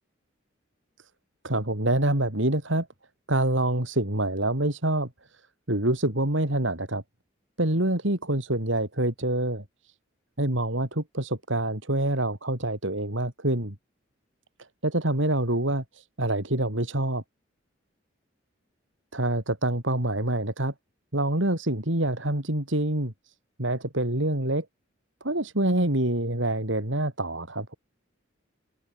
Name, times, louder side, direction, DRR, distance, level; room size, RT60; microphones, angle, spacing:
voice 1, 1.4-2.9 3.3-5.4 5.7-7.0 7.6-9.9 10.4-13.8 14.8-17.2 19.1-20.7 21.1-23.1 23.6-24.7 25.2-27.7, right 1 dB, 70° right, 4.4 m, -26 dB
open air
head